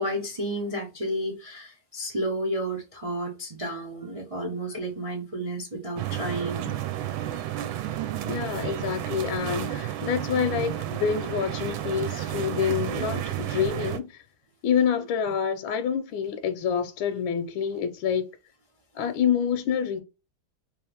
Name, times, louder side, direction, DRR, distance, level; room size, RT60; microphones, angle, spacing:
voice 1, 0.0-6.7, right 1 dB, 45° right, 0.4 m, -31 dB
sound 1, 6.0-14.0, right 12 dB, 80° right, 1.4 m, -31 dB
voice 2, 8.2-14.1 14.6-18.2 18.9-20.0, left 7 dB, 75° left, 1.4 m, -27 dB
3.4 x 3.1 x 3.3 m
omnidirectional pair, 2.3 m